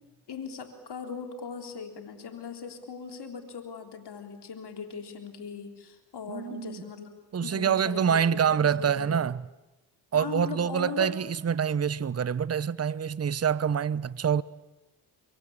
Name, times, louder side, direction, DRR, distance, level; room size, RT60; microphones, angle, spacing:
voice 1, 0.3-7.1 7.4-9.2 10.1-11.1, left 6 dB, 60° left, 3.7 m, -39 dB
voice 2, 6.3-6.8 7.3-9.4 10.1-14.4, right 7 dB, 35° right, 0.9 m, -26 dB
24.5 x 23.5 x 8.8 m
supercardioid pair, 50°, 45 cm